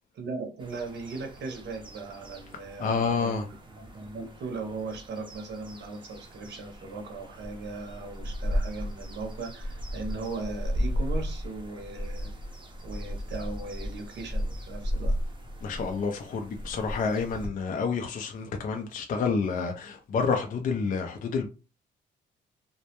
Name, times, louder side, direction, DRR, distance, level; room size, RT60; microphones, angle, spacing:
voice 1, 0.1-12.3 12.8-15.2, right 3 dB, 60° right, 0.7 m, -38 dB
sound 1, 0.6-17.5, equal, 25° right, 0.6 m, -35 dB
voice 2, 2.8-3.4 15.6-21.5, left 5 dB, 45° left, 0.4 m, -29 dB
2.1 x 2.1 x 2.8 m
cardioid pair, 90°, 20 cm